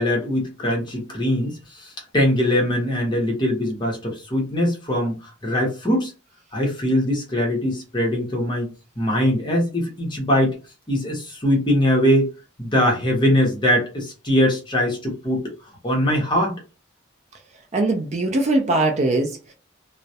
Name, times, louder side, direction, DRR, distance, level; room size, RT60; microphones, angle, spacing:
voice 1, 0.0-6.1 6.5-8.7 9.0-10.6 10.9-12.3 12.6-15.4 15.8-16.6, equal, 20° left, 0.7 m, -21 dB
voice 2, 17.7-19.5, right 2 dB, 35° right, 0.4 m, -21 dB
2.2 x 2.0 x 2.7 m
head